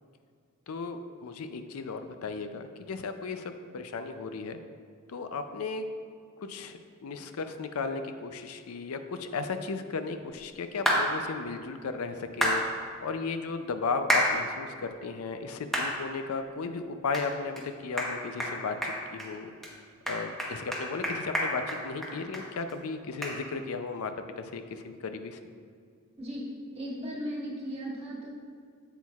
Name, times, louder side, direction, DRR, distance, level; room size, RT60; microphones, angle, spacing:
voice 1, 0.7-4.6 5.1-5.9 6.5-12.6 13.0-19.5 20.1-25.4, left 4 dB, 90° left, 8 dB, 0.5 m, -35 dB
sound 1, 10.9-11.0 12.4-12.6 14.1-14.3 14.8-14.9 15.7-15.9 16.4-16.5 17.1-17.3 17.6-17.7 18.0-18.1 18.4-18.5 18.8-19.3 19.6-19.7 20.1-22.4 22.7-22.8 23.2-23.3, equal, ahead, 1.0 m, -27 dB
voice 2, 26.7-28.3, equal, 30° right, -5 dB, 1.5 m, -36 dB
8.3 x 8.0 x 2.4 m, 2.1 s
head